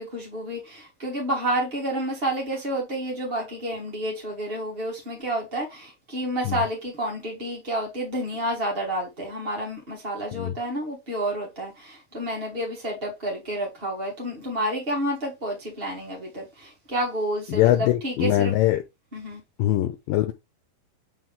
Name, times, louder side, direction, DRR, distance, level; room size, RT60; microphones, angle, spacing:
voice 1, 0.0-18.6 19.1-19.4, right 1 dB, 30° right, 1.0 m, -30 dB
voice 2, 17.5-18.8 19.6-20.3, left 14 dB, 80° left, 2.3 m, -22 dB
8.8 x 3.1 x 3.7 m
omnidirectional pair, 4.1 m